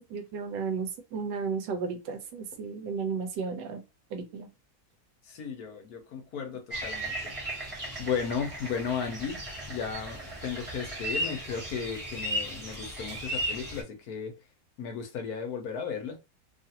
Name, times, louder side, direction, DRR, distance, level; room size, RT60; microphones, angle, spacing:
voice 1, 0.1-3.8 4.1-4.5, right 5 dB, 90° right, 1.3 m, -33 dB
voice 2, 5.3-7.3 8.0-9.4 9.7-14.3 14.8-16.2, left 6 dB, 65° left, 1.1 m, -35 dB
sound 1, 6.7-13.8, equal, 25° right, 1.0 m, -36 dB
3.1 x 2.4 x 2.8 m
omnidirectional pair, 1.9 m